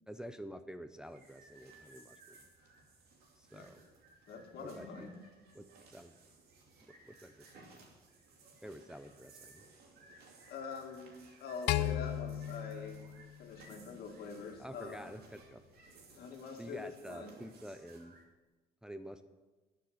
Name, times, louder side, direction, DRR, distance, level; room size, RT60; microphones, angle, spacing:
voice 1, 0.1-2.5 3.4-3.8 4.6-5.1 5.5-6.2 7.0-7.8 8.6-9.6 14.6-15.6 16.6-18.2 18.8-19.2, equal, 5° right, 8 dB, 0.6 m, -48 dB
sound 1, 1.0-18.2, right 3 dB, 65° right, 2.6 m, -60 dB
voice 2, 4.3-5.1 10.5-11.1 11.4-13.0 13.4-15.0 16.2-17.3, left 5 dB, 70° left, 2 dB, 2.2 m, -45 dB
sound 2, 11.7-14.1, left 13 dB, 85° left, 0.6 m, -35 dB
11.5 x 7.0 x 8.3 m, 1.2 s
cardioid pair, 110°, 17 cm